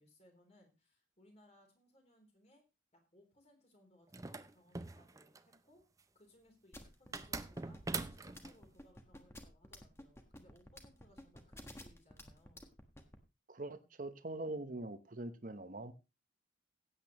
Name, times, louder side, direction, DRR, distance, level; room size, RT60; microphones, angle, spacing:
voice 1, 0.0-2.6 2.9-5.8 6.1-7.8 8.1-12.7, left 1 dB, 35° left, 3.5 m, -66 dB
sound 1, 4.1-5.6 7.1-8.5, right 3 dB, 15° right, 0.5 m, -42 dB
sound 2, 6.7-13.2, left 1 dB, 15° left, 1.4 m, -51 dB
voice 2, 13.5-15.9, right 2 dB, 45° right, 0.9 m, -43 dB
16.5 x 8.4 x 3.0 m
head